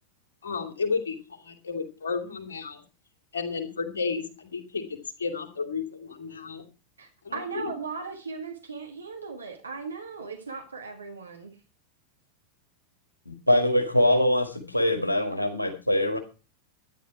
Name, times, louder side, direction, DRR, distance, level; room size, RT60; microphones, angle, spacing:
voice 1, 0.4-1.2 1.4-2.8 3.3-6.6 7.2-7.7, left 5 dB, 65° left, 6 dB, 2.7 m, -32 dB
voice 2, 7.0-11.6, right 4 dB, 75° right, 4 dB, 1.8 m, -37 dB
voice 3, 13.3-16.2, left 1 dB, 85° left, 4 dB, 2.0 m, -23 dB
13.0 x 10.5 x 4.6 m, 0.33 s
figure-of-eight pair, 90°, 0 cm